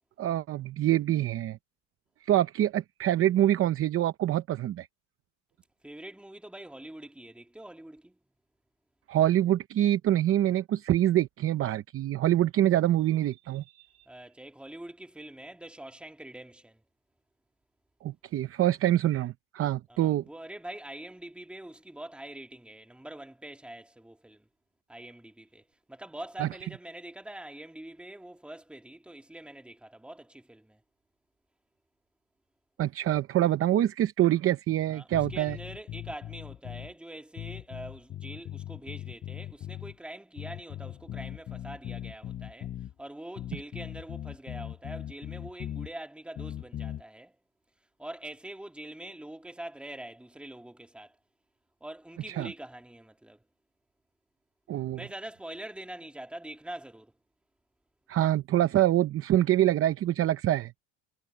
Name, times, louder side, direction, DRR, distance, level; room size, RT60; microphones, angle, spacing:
voice 1, 0.2-1.6 2.2-4.9 9.1-14.1 18.0-20.2 26.4-26.5 32.8-35.6 52.3-52.5 54.7-55.0 58.1-60.7, right 13 dB, 35° right, 0.6 m, -25 dB
voice 2, 5.8-8.2 14.1-16.8 19.9-24.5 24.9-30.8 34.9-47.4 48.0-51.2 51.8-53.4 54.9-57.1, right 1 dB, 5° right, 2.1 m, -44 dB
sound 1, 35.1-36.9 37.4-39.9 40.4-42.9 43.4-45.9 46.3-47.0, left 11 dB, 30° left, 0.7 m, -39 dB
cardioid pair, 145°, 39 cm